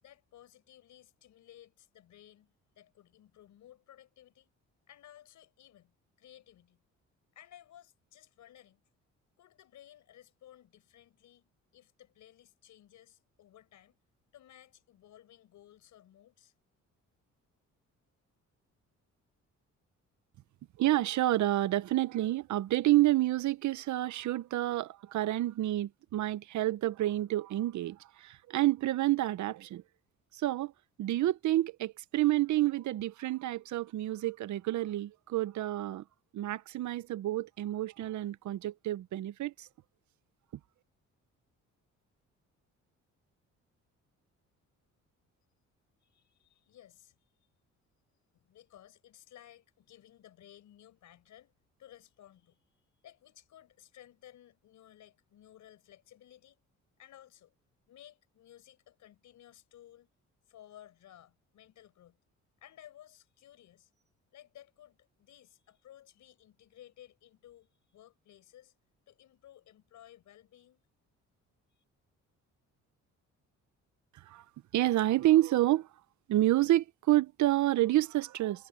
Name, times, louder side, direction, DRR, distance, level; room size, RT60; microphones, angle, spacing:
voice 1, 0.0-4.5 4.9-6.8 7.3-8.8 9.4-14.0 14.3-16.5 46.0-47.1 48.3-51.5 51.8-56.6 57.0-57.5 57.9-60.1 60.5-62.2 62.6-64.0 64.3-68.7 69.1-70.8 71.8-71.9, left 12 dB, 75° left, 4.9 m, -57 dB
voice 2, 20.8-29.8 30.3-30.7 31.0-36.0 36.3-39.7 74.3-74.4 74.7-75.9 76.3-78.7, right 15 dB, 70° right, 0.8 m, -29 dB
cardioid pair, 90°, 30 cm